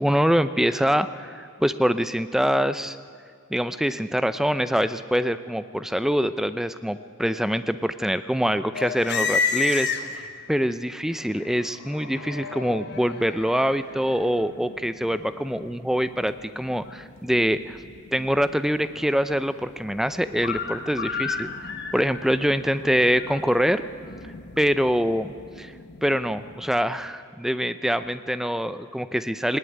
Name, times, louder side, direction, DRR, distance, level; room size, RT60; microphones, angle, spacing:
voice 1, 0.0-3.0 3.5-17.8 18.1-21.5 21.9-23.8 24.6-25.7 26.0-29.6, equal, ahead, 11 dB, 0.5 m, -24 dB
sound 1, 8.7-10.5 11.0-26.9, left 5 dB, 50° left, 1.3 m, -34 dB
19.0 x 18.0 x 9.5 m, 2.1 s
head